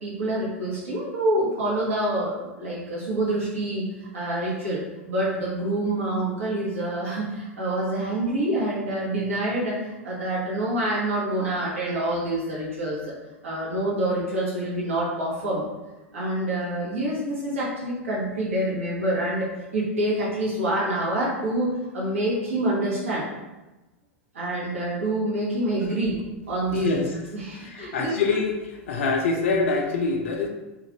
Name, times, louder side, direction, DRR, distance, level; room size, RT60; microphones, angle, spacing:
voice 1, 0.0-3.9 4.1-4.8 5.1-13.1 13.4-15.6 16.1-23.2 24.3-26.2 26.5-26.9 27.3-28.1, right 1 dB, 75° right, -6 dB, 1.1 m, -26 dB
voice 2, 26.7-27.1 27.6-28.6 28.9-30.5, left 4 dB, 70° left, 2 dB, 0.4 m, -25 dB
3.2 x 2.4 x 2.9 m, 1.0 s
hypercardioid pair, 90°, 7 cm